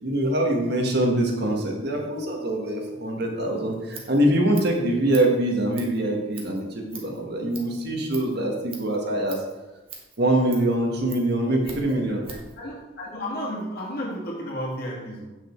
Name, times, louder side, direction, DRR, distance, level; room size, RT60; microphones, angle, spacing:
voice 1, 0.0-9.4 10.2-12.2, right 1 dB, 55° right, 1 dB, 1.5 m, -24 dB
Scissors, 3.6-12.6, right 4 dB, 25° right, 1.4 m, -45 dB
voice 2, 11.7-12.0 12.3-15.3, equal, 50° left, -4 dB, 2.1 m, -33 dB
8.7 x 6.3 x 4.5 m, 1.1 s
head